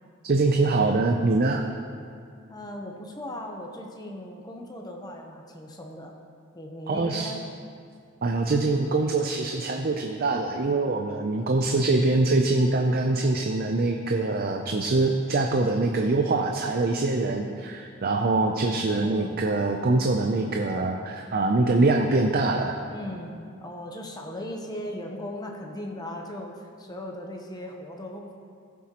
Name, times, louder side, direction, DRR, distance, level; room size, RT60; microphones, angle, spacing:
voice 1, 0.2-1.6 6.9-7.3 8.2-22.8, right 2 dB, 50° right, 3 dB, 0.5 m, -24 dB
voice 2, 2.5-6.1 6.5-7.5 12.0-12.1 18.8-19.5 22.9-28.3, left 1 dB, 20° left, 2 dB, 0.8 m, -38 dB
16.5 x 7.3 x 3.0 m, 2.3 s
head